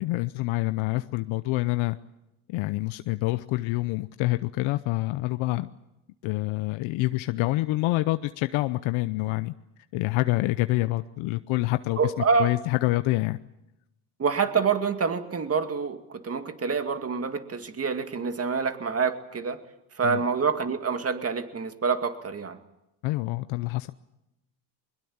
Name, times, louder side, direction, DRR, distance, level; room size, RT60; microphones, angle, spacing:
voice 1, 0.0-2.0 2.5-5.7 6.2-9.5 9.9-12.1 12.4-13.4 20.0-20.2 23.0-23.9, left 19 dB, 80° left, 12 dB, 0.8 m, -27 dB
voice 2, 12.0-12.5 14.2-19.6 20.0-22.6, right 5 dB, 30° right, 8 dB, 2.2 m, -27 dB
22.0 x 21.5 x 8.7 m, 0.92 s
cardioid pair, 100°, 46 cm